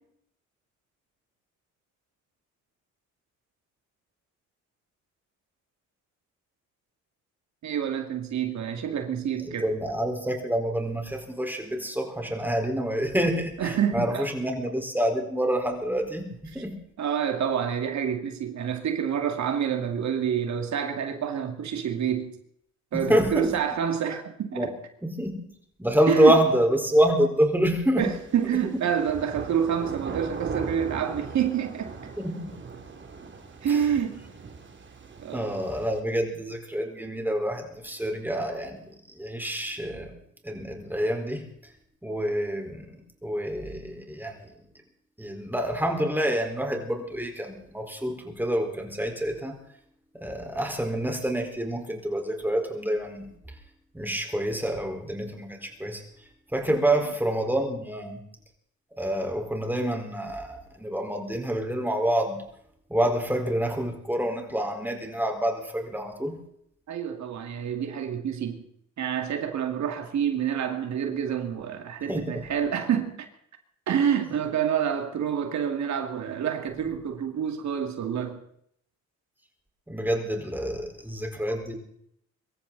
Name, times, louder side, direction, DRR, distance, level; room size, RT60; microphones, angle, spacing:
voice 1, 7.6-9.7 13.6-14.3 17.0-22.3 22.9-24.7 26.1-26.4 28.0-31.9 33.6-34.2 35.2-35.7 56.7-56.8 66.9-68.6 69.0-73.3 73.9-78.4, right 8 dB, 65° right, 2.4 m, -28 dB
voice 2, 9.4-16.8 22.9-23.6 24.5-24.7 25.0-25.4 25.8-28.1 32.2-32.4 33.7-33.9 35.3-38.9 39.2-40.2 40.4-41.4 42.0-44.5 45.2-49.6 50.1-53.3 53.9-56.0 56.5-58.2 59.0-62.4 62.9-66.4 72.1-72.4 79.9-81.8, right 1 dB, 5° right, 4.4 m, -27 dB
sound 1, 28.0-36.0, right 4 dB, 40° right, 2.9 m, -39 dB
24.0 x 14.0 x 4.1 m
cardioid pair, 90°, 30 cm